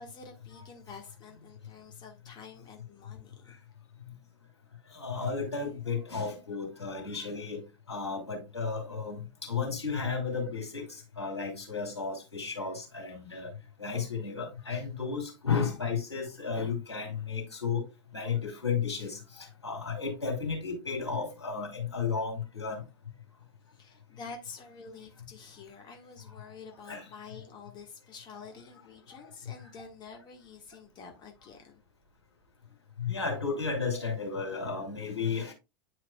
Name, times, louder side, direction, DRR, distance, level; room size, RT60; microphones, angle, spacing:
voice 1, 0.0-3.5 23.7-31.8, left 5 dB, 30° left, 1.6 m, -48 dB
voice 2, 4.9-7.6 7.9-10.9 11.2-13.5 13.8-17.8 18.1-22.8 26.9-27.0 33.0-35.5, left 5 dB, 90° left, 2.5 m, -33 dB
9.2 x 4.6 x 2.3 m
figure-of-eight pair, 90°, 14 cm